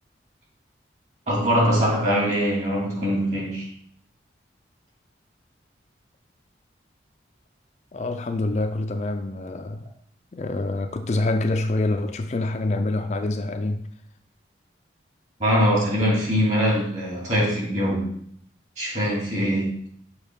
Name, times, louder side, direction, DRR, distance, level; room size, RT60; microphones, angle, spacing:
voice 1, 1.3-3.7 15.4-18.2 18.8-19.8, equal, 40° right, -4 dB, 2.4 m, -22 dB
voice 2, 7.9-9.9 10.3-13.8, left 2 dB, 40° left, 6 dB, 0.4 m, -26 dB
6.4 x 2.9 x 5.0 m, 0.64 s
head